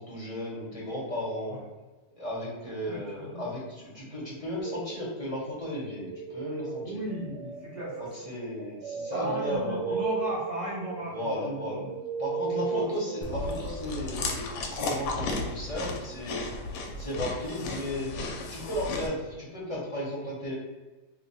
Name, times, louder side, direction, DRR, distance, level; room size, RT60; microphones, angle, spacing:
voice 1, 0.0-1.6 2.2-7.0 8.0-10.0 11.1-11.9 12.2-16.4 17.0-20.5, left 1 dB, 30° left, -6 dB, 0.7 m, -35 dB
voice 2, 2.8-3.4 6.8-8.1 9.1-12.0 12.5-12.9 13.4-13.5, equal, 35° right, -7 dB, 0.8 m, -35 dB
sound 1, 4.6-5.3 5.8-13.9, right 6 dB, 80° right, 1.2 m, -36 dB
Chewing mastication, 13.2-19.1, left 3 dB, 85° left, 1.2 m, -34 dB
3.0 x 2.1 x 4.1 m, 1.2 s
omnidirectional pair, 1.8 m